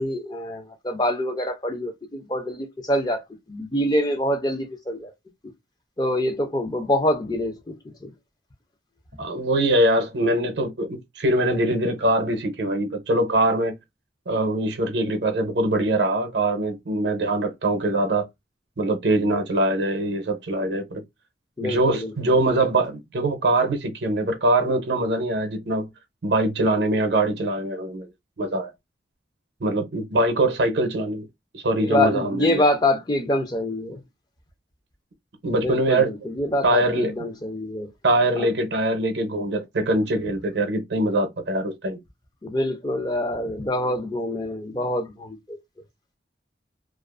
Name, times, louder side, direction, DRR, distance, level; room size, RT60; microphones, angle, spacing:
voice 1, 0.0-3.2 3.5-5.1 6.0-7.8 8.0-8.1 21.6-22.4 31.8-34.0 35.6-37.9 38.4-38.5 42.4-45.6, left 1 dB, 20° left, 0.5 m, -25 dB
voice 2, 9.2-13.8 14.3-18.3 18.8-21.0 21.6-25.9 26.2-28.1 28.4-28.7 29.6-31.3 31.5-32.6 35.4-36.1 36.6-37.1 38.0-42.0, right 1 dB, 75° right, 0.6 m, -23 dB
2.4 x 2.4 x 2.4 m
head